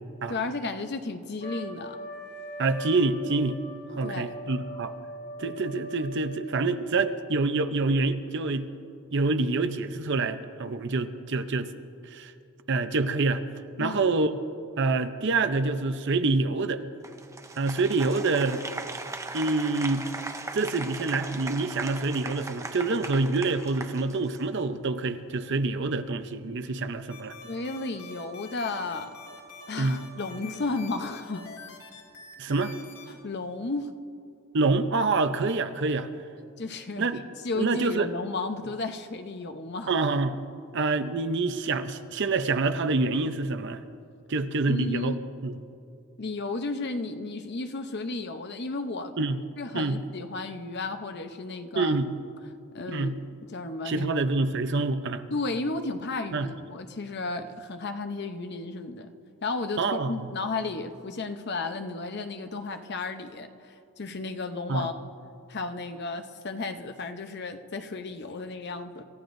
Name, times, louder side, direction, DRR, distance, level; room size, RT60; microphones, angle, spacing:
voice 1, 0.3-2.0 4.0-4.3 13.8-14.0 27.4-29.1 29.7-31.5 33.1-33.9 36.6-37.1 37.4-39.9 44.7-45.2 46.2-49.1 49.6-52.0 52.7-53.2 53.5-54.3 55.3-59.1 59.4-63.5 64.0-64.9 65.5-69.0, left 3 dB, 50° left, 7 dB, 0.7 m, -33 dB
Trumpet, 1.4-6.4, right 1 dB, 30° left, 3.8 m, -41 dB
voice 2, 2.6-3.6 3.9-4.9 5.4-8.7 9.1-11.7 12.1-12.3 12.7-13.4 13.8-14.3 14.8-16.8 17.6-18.6 19.3-20.1 20.5-27.3 29.8-30.0 32.4-32.7 34.5-36.1 37.0-37.2 37.5-38.1 39.9-40.4 40.7-43.8 44.3-45.2 45.4-45.5 49.2-49.4 49.7-50.0 51.8-52.1 52.9-53.2 53.8-55.2 56.3-56.5 59.8-60.3 64.7-64.9, right 3 dB, 55° right, 10 dB, 0.6 m, -26 dB
Applause, 17.0-24.6, right 3 dB, 15° right, 0.6 m, -38 dB
sound 1, 27.1-33.1, left 4 dB, 80° left, 2.4 m, -46 dB
27.5 x 14.0 x 2.6 m, 2.6 s
head